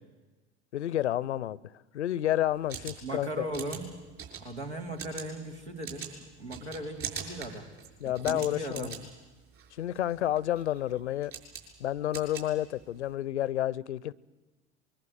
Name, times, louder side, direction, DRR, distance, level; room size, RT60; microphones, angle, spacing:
voice 1, 0.7-1.6 1.9-3.5 8.0-8.9 9.7-11.3 11.8-14.1, left 12 dB, 85° left, 0.7 m, -30 dB
sound 1, 2.5-13.1, right 7 dB, 40° right, 6.8 m, -44 dB
voice 2, 3.0-3.9 4.4-7.7 8.0-8.9, right 1 dB, 90° right, 3.1 m, -38 dB
23.5 x 22.5 x 8.0 m
hypercardioid pair, 75°, 33 cm